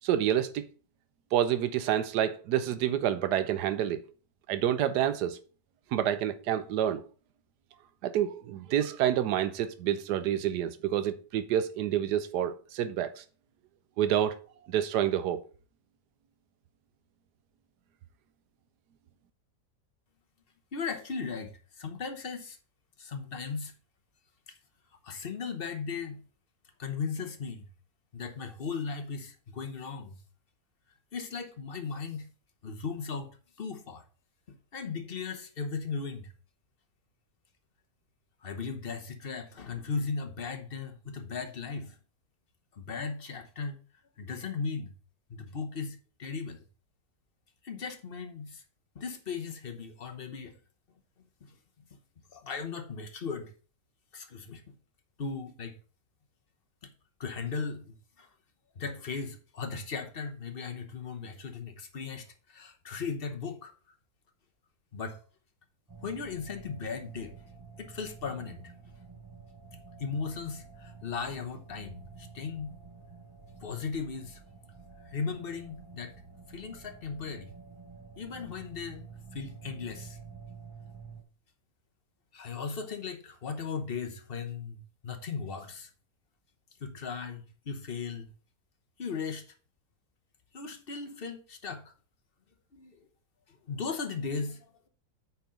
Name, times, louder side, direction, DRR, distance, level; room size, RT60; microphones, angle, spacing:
voice 1, 0.0-0.7 1.3-4.0 4.5-5.4 5.9-7.0 8.0-13.2 14.0-14.4 14.7-15.4, right 10 dB, 85° right, 1.2 m, -28 dB
voice 2, 20.7-22.6 23.0-23.7 24.5-24.6 25.0-26.2 26.8-27.7 28.1-30.2 31.1-32.3 32.6-33.3 33.6-34.0 34.5-36.3 38.4-42.0 42.7-43.8 44.2-44.9 45.3-46.6 47.6-48.6 48.9-50.6 51.4-51.5 51.9-52.0 52.3-53.5 54.1-54.7 55.2-55.8 56.8-56.9 57.2-58.3 58.7-63.7 64.9-65.2 66.0-67.4 67.8-68.7 70.0-72.8 73.6-74.4 75.0-76.1 76.5-77.6 78.2-79.0 79.3-80.2 82.3-85.9 86.8-88.3 89.0-89.5 90.5-91.9 92.7-93.0 93.5-94.7, left 5 dB, 40° left, 1.1 m, -37 dB
sound 1, 65.9-81.2, right 5 dB, 15° right, 1.0 m, -49 dB
8.2 x 4.4 x 5.1 m
omnidirectional pair, 1.7 m